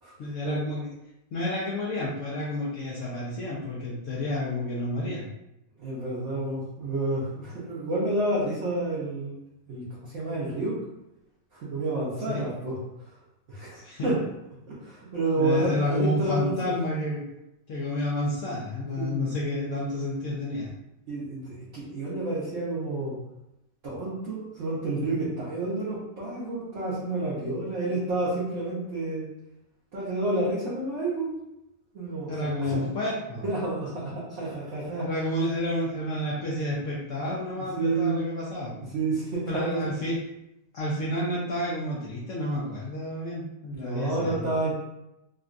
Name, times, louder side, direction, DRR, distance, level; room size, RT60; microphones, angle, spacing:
voice 1, 0.2-0.9 1.3-5.3 12.3-12.4 13.7-14.2 15.4-17.2 17.7-20.7 32.3-33.4 34.8-38.8 39.5-40.2 40.7-44.5, left 1 dB, 70° left, -5 dB, 0.7 m, -30 dB
voice 2, 5.8-9.4 9.7-10.8 11.6-12.8 13.5-14.2 14.7-16.7 19.0-19.6 21.1-23.1 23.8-29.2 29.9-31.3 31.9-32.8 33.4-35.1 37.5-38.2 38.9-39.9 43.7-44.7, right 2 dB, 55° right, -9 dB, 0.9 m, -29 dB
3.7 x 2.2 x 2.5 m, 0.88 s
omnidirectional pair, 1.9 m